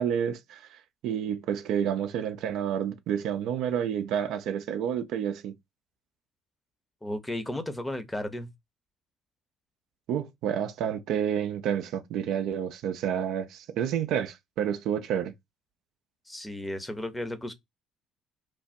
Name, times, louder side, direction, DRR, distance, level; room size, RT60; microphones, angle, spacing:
voice 1, 0.0-5.5 10.1-15.3, right 9 dB, 70° right, 0.4 m, -29 dB
voice 2, 7.0-8.5 16.3-17.5, left 1 dB, 15° left, 0.7 m, -34 dB
3.2 x 2.1 x 2.5 m
hypercardioid pair, 65°, 0 cm